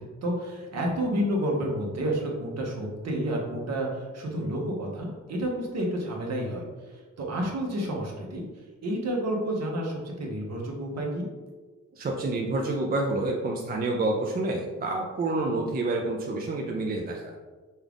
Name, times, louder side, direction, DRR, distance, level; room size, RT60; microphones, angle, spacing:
voice 1, 0.2-6.6 6.9-8.4 8.8-11.3, right 1 dB, 60° right, -1 dB, 1.0 m, -30 dB
voice 2, 11.9-17.3, right 2 dB, 30° right, 0 dB, 0.4 m, -28 dB
5.4 x 2.4 x 3.5 m, 1.4 s
wide cardioid pair, 160°, 30 cm